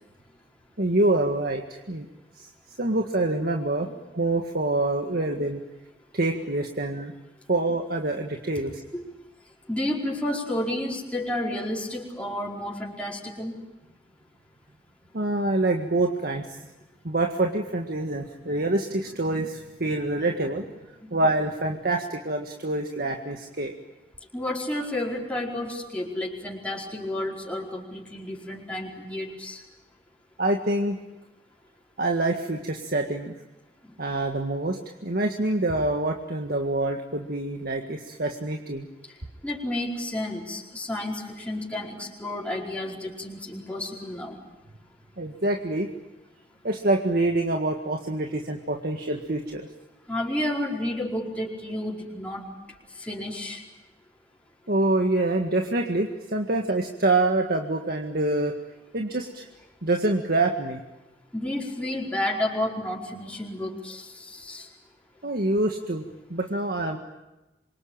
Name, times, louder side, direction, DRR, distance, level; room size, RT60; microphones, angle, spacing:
voice 1, 0.8-2.1 2.3-2.5 2.8-5.6 6.1-7.1 7.5-8.8 15.1-16.7 17.0-20.6 21.1-23.7 30.4-31.0 32.0-33.3 34.0-38.9 45.2-45.9 46.6-49.7 54.7-58.5 58.9-59.5 59.8-60.8 65.2-66.0 66.3-67.0, right 2 dB, 60° right, 3 dB, 1.8 m, -26 dB
voice 2, 9.7-13.6 24.3-29.6 33.8-33.9 39.4-44.4 50.1-52.4 53.0-53.6 61.3-64.7, left 1 dB, 10° left, -3 dB, 4.7 m, -31 dB
27.5 x 23.5 x 8.9 m, 1.0 s
head